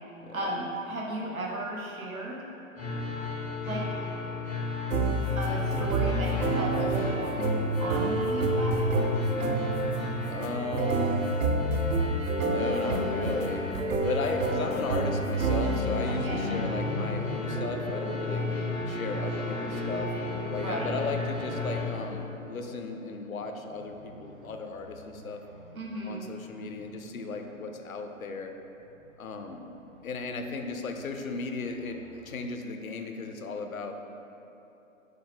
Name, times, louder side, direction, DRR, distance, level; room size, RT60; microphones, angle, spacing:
voice 1, 0.3-2.5 3.6-3.9 5.3-9.2 16.1-16.5 20.5-21.0 25.7-26.3, right 1 dB, 85° right, -2 dB, 0.8 m, -35 dB
sound 1, 2.8-21.9, left 3 dB, 5° left, 0.5 m, -34 dB
sound 2, 4.9-16.1, right 2 dB, 70° right, 0.5 m, -28 dB
voice 2, 10.3-11.3 12.4-13.7 14.0-18.5 18.9-20.1 20.5-25.4 26.1-28.5 29.2-29.6 30.0-33.9, left 3 dB, 80° left, 5 dB, 0.5 m, -35 dB
sound 3, 15.6-27.5 28.8-32.4, equal, 40° right, 1.1 m, -41 dB
5.5 x 2.0 x 3.3 m, 3.0 s
figure-of-eight pair, 130°, 41 cm